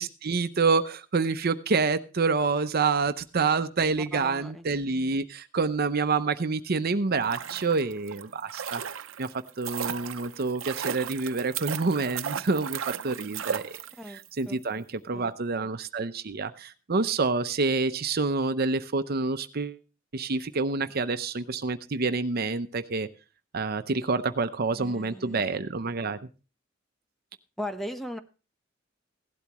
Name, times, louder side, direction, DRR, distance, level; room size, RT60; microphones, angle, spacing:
voice 1, 0.0-8.8 9.2-13.8 14.1-19.8 20.1-23.1 23.5-26.2, right 4 dB, 50° right, 10 dB, 0.7 m, -27 dB
voice 2, 4.1-4.7 14.0-14.6 15.1-15.3 15.6-15.7 24.8-25.5 27.6-28.2, equal, ahead, 7 dB, 0.9 m, -38 dB
sound 1, 7.1-14.3 14.5-14.6, right 8 dB, 85° right, 0.6 m, -35 dB
16.5 x 12.0 x 3.0 m, 0.33 s
head